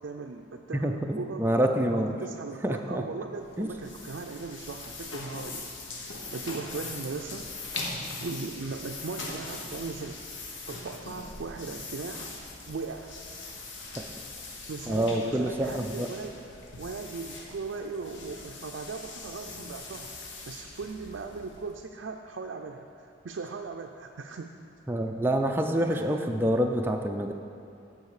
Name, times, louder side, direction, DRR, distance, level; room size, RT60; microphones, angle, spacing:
voice 1, 0.0-1.5 1.9-5.7 6.3-7.5 8.2-10.2 10.7-12.3 12.7-13.1 14.7-16.4 16.8-24.5 25.9-26.3, right 4 dB, 70° right, 2 dB, 0.4 m, -38 dB
voice 2, 0.8-2.1 2.6-3.0 3.6-3.7 14.9-16.1 24.9-27.3, right 1 dB, 10° right, 3 dB, 0.4 m, -27 dB
sound 1, 3.4-21.8, left 3 dB, 75° left, 1.2 m, -41 dB
13.5 x 4.9 x 4.8 m, 2.6 s
head